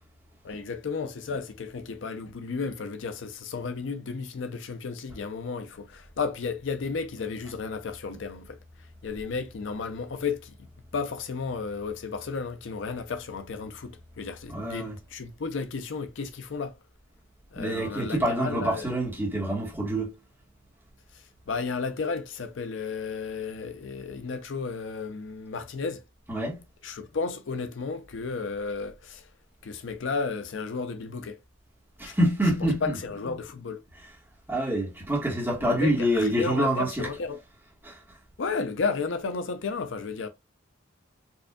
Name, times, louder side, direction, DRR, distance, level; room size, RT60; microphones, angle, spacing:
voice 1, 0.4-8.6 9.0-10.7 10.9-16.8 17.5-18.9 21.5-26.0 26.8-29.3 29.6-31.4 32.0-32.2 32.8-33.8 35.6-37.4 38.4-40.3, left 4 dB, 65° left, 0.5 m, -33 dB
voice 2, 14.5-15.0 17.5-20.2 26.3-26.6 32.0-33.0 34.5-37.1 37.8-38.0, right 1 dB, 10° right, 1.4 m, -26 dB
4.5 x 2.6 x 2.3 m
head